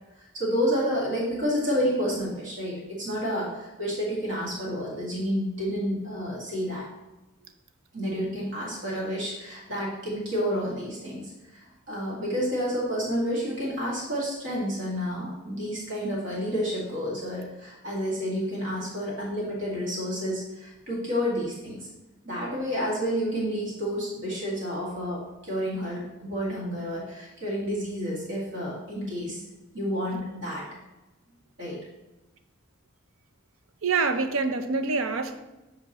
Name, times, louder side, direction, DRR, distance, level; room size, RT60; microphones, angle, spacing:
voice 1, 0.1-6.9 7.9-21.9 22.2-29.4 29.7-30.7 31.6-31.9, equal, 65° right, -4 dB, 1.9 m, -30 dB
voice 2, 33.8-35.4, right 4 dB, 90° right, 9 dB, 0.6 m, -26 dB
8.1 x 5.1 x 3.0 m, 1.0 s
head